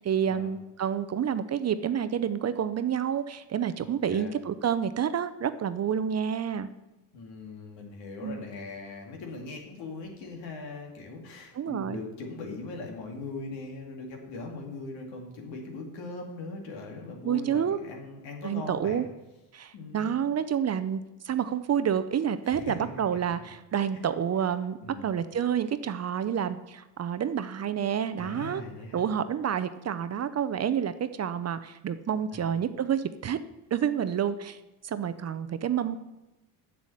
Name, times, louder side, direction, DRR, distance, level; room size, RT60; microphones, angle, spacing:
voice 1, 0.0-6.7 8.2-8.4 11.5-12.0 17.2-17.8 18.4-19.1 19.5-28.6 28.9-33.4 33.7-34.6 34.8-36.0, right 8 dB, 35° right, 12 dB, 0.6 m, -29 dB
voice 2, 3.8-4.3 7.1-19.0 19.7-20.2 22.4-22.7 23.9-24.0 24.8-25.1 28.2-29.1 32.3-32.4, left 3 dB, 80° left, 1 dB, 2.4 m, -40 dB
7.3 x 7.0 x 7.8 m, 1.0 s
supercardioid pair, 85°, 43 cm